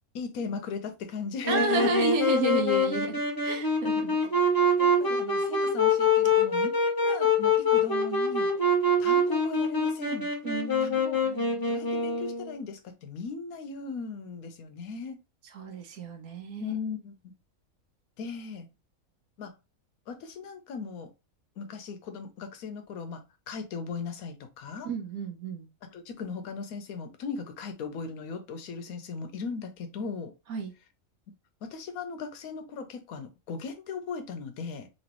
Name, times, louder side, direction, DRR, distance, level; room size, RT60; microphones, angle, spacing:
voice 1, 0.1-1.9 4.8-6.7 7.0-8.5 9.0-10.3 10.8-11.2 11.7-15.2 16.6-17.3 18.2-18.7 19.4-19.6 20.1-21.1 21.6-24.9 25.8-30.3 31.6-34.9, left 5 dB, 85° left, 1.2 m, -38 dB
Wind instrument woodwind instrument, 1.4-12.6, left 2 dB, 25° left, 0.5 m, -25 dB
voice 2, 1.5-4.2 10.4-11.6 15.5-16.8 24.8-25.7 30.5-30.7, right 3 dB, 90° right, 1.3 m, -31 dB
3.1 x 3.0 x 2.9 m
omnidirectional pair, 1.5 m